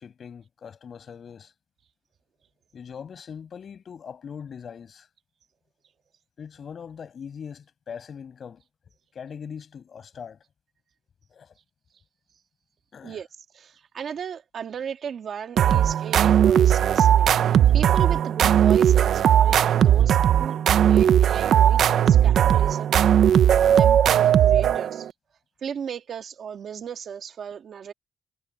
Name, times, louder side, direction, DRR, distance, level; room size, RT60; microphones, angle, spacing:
voice 1, 0.0-1.5 2.7-5.1 6.4-8.6 9.1-10.4 11.3-11.5 12.9-13.2, left 7 dB, 45° left, 6.6 m, -41 dB
voice 2, 13.6-17.3 17.7-23.0 23.7-25.1 25.6-27.9, right 7 dB, 55° right, 1.9 m, -35 dB
sound 1, 15.6-25.1, right 10 dB, 75° right, 0.6 m, -18 dB
wide cardioid pair, 165°, 0 cm